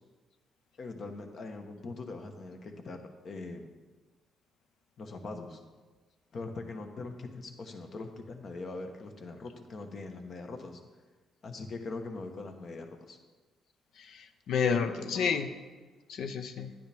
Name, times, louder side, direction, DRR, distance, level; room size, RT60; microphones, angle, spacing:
voice 1, 0.8-3.7 5.0-5.6 6.3-10.8 11.4-13.2 14.6-14.9, left 3 dB, 55° left, 5 dB, 1.2 m, -41 dB
voice 2, 14.0-15.5 16.1-16.7, left 6 dB, 75° left, 9 dB, 0.7 m, -31 dB
10.5 x 9.5 x 3.5 m, 1.4 s
cardioid pair, 90°, 0 cm